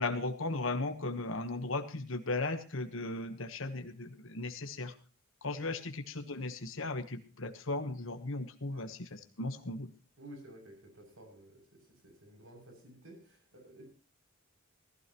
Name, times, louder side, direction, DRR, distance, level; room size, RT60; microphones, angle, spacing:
voice 1, 0.0-4.9 5.4-9.9, left 2 dB, 70° left, 8 dB, 1.3 m, -36 dB
voice 2, 10.2-13.8, right 1 dB, 75° right, 2 dB, 7.1 m, -53 dB
17.0 x 15.5 x 3.0 m, 0.36 s
head